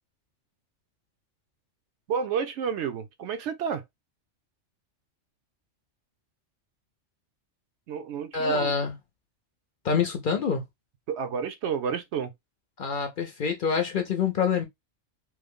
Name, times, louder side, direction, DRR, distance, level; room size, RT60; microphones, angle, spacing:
voice 1, 2.1-3.8 7.9-8.7 11.1-12.3, right 7 dB, 70° right, 0.8 m, -30 dB
voice 2, 8.3-9.0 9.8-10.6 12.8-14.7, left 5 dB, 55° left, 0.7 m, -26 dB
3.1 x 2.0 x 3.4 m
omnidirectional pair, 1.3 m